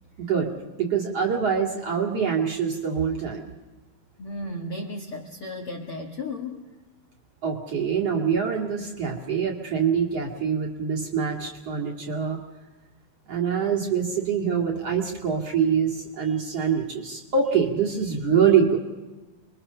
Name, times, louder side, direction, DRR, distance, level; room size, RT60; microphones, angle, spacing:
voice 1, 0.2-0.5 0.8-3.5 7.4-12.4 13.3-18.8, right 7 dB, 45° right, -1 dB, 2.6 m, -24 dB
voice 2, 4.2-6.7, left 2 dB, 50° left, 0 dB, 1.8 m, -34 dB
28.0 x 22.5 x 6.7 m, 1.1 s
omnidirectional pair, 4.7 m